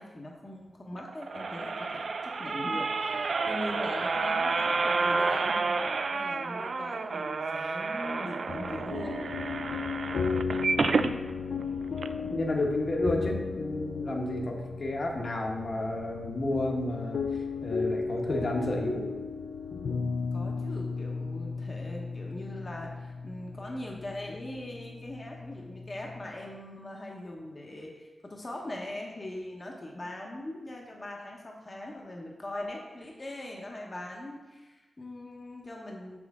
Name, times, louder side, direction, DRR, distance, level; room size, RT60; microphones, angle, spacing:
voice 1, 0.0-5.8 6.1-9.2 20.3-36.2, left 1 dB, 30° left, -1 dB, 1.0 m, -41 dB
sound 1, 1.0-11.1 11.6-11.7 12.0-12.1, right 4 dB, 60° right, 0.3 m, -30 dB
sound 2, 8.5-26.3, left 5 dB, 75° left, 0.5 m, -35 dB
voice 2, 12.3-17.3 17.6-19.1, left 1 dB, 50° left, 1 dB, 1.2 m, -31 dB
6.3 x 6.1 x 3.6 m, 1.2 s
wide cardioid pair, 90°, 0 cm